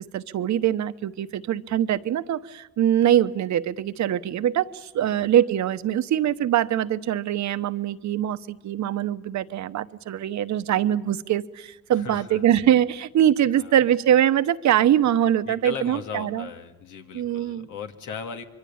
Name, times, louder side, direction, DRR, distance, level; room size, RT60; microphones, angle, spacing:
voice 1, 0.0-16.5 17.1-17.7, right 11 dB, 70° right, 12 dB, 1.0 m, -23 dB
voice 2, 11.9-12.4 13.5-13.8 15.4-18.4, left 6 dB, 90° left, 6 dB, 2.3 m, -37 dB
25.5 x 23.5 x 8.7 m, 0.98 s
cardioid pair, 90°, 30 cm